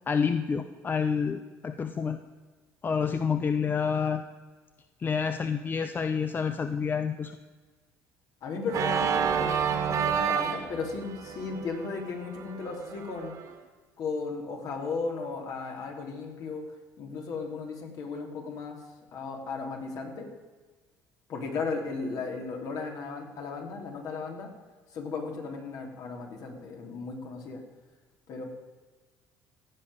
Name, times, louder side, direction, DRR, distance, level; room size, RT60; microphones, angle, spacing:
voice 1, 0.1-2.2 2.8-4.2 5.0-7.4, left 6 dB, 30° left, 9 dB, 0.7 m, -28 dB
voice 2, 8.4-13.4 14.0-18.8 19.1-20.3 21.3-24.5 24.9-27.6 28.3-28.4, left 4 dB, 60° left, 2 dB, 3.0 m, -35 dB
Organ, 8.7-13.5, right 7 dB, 55° right, 2.0 m, -30 dB
15.0 x 5.4 x 9.6 m, 1.3 s
supercardioid pair, 95°, 7 cm